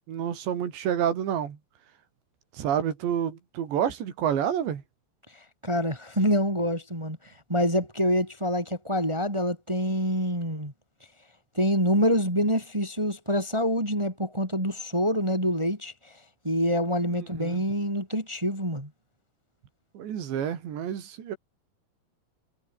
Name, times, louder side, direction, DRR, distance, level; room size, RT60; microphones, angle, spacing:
voice 1, 0.1-1.6 2.5-4.8 17.1-17.6 20.0-21.4, right 9 dB, 80° right, 5.4 m, -29 dB
voice 2, 5.6-7.2 7.5-10.7 11.5-15.9 16.4-18.9, equal, 5° right, 5.9 m, -26 dB
omnidirectional pair, 5.1 m